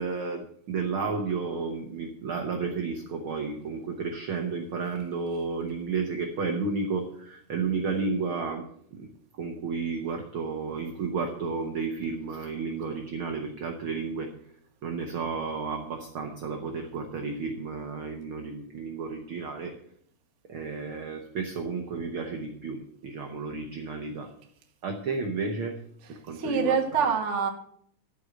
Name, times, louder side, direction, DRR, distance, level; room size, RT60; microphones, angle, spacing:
voice 1, 0.0-8.6 8.9-9.1 9.4-14.3 14.8-19.7 20.5-24.3 24.8-25.8 26.2-27.1, right 4 dB, 75° right, 4 dB, 1.2 m, -32 dB
voice 2, 26.0-27.5, right 6 dB, 55° right, 3 dB, 0.7 m, -26 dB
13.0 x 5.4 x 7.7 m, 0.67 s
omnidirectional pair, 3.9 m